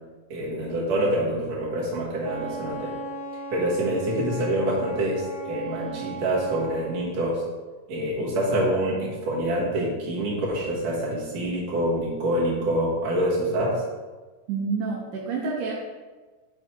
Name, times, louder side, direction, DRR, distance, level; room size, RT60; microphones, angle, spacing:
voice 1, 0.3-2.9 3.5-7.4 7.9-13.8, right 1 dB, 60° right, -5 dB, 2.9 m, -26 dB
Wind instrument woodwind instrument, 2.2-6.8, right 2 dB, 35° right, 0.9 m, -37 dB
voice 2, 14.5-15.7, right 4 dB, 85° right, -3 dB, 2.5 m, -28 dB
7.7 x 4.7 x 4.5 m, 1.3 s
omnidirectional pair, 3.5 m